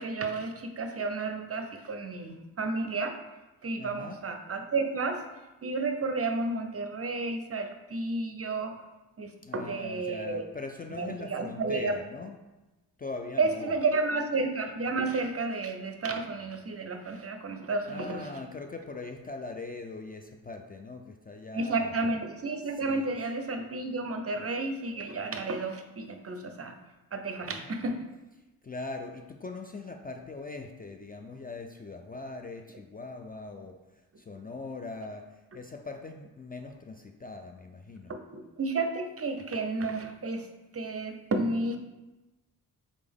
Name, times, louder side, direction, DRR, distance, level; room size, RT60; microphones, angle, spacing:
voice 1, 0.0-3.2 3.6-5.2 5.6-8.7 9.2-10.5 10.9-11.9 13.4-18.3 21.5-26.8 27.1-28.1 38.1-41.8, right 3 dB, 35° right, 6 dB, 0.6 m, -32 dB
voice 2, 3.8-4.2 9.4-12.4 13.0-13.7 17.9-22.0 22.8-23.1 27.4-27.7 28.6-38.1, left 3 dB, 20° left, 4 dB, 0.4 m, -41 dB
3.8 x 3.4 x 3.5 m, 1.1 s
supercardioid pair, 40°, 41 cm